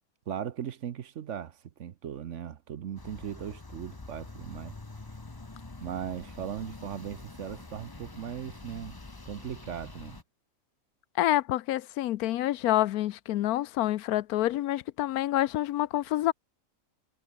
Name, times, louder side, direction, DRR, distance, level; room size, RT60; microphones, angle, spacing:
voice 1, 0.3-4.7 5.8-9.0 9.2-10.2, right 9 dB, 60° right, 1.1 m, -38 dB
sound 1, 3.0-10.2, left 2 dB, 15° left, 1.0 m, -46 dB
voice 2, 11.2-16.3, left 14 dB, 85° left, 1.1 m, -27 dB
omnidirectional pair, 1.5 m